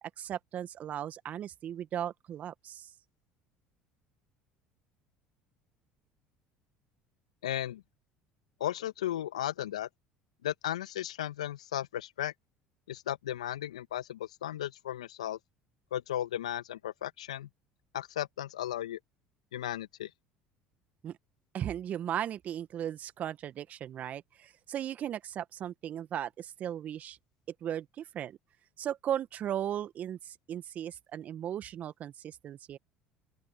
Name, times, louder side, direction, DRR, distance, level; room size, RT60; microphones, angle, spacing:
voice 1, 0.0-2.9 21.0-21.2 21.5-27.2 27.6-28.4 28.8-32.8, right 10 dB, 50° right, 1.7 m, -37 dB
voice 2, 7.4-7.8 8.6-9.9 10.4-12.3 12.9-15.4 15.9-17.5 17.9-19.0 19.5-20.1, left 12 dB, 85° left, 1.9 m, -35 dB
open air
hypercardioid pair, 65°, 3 cm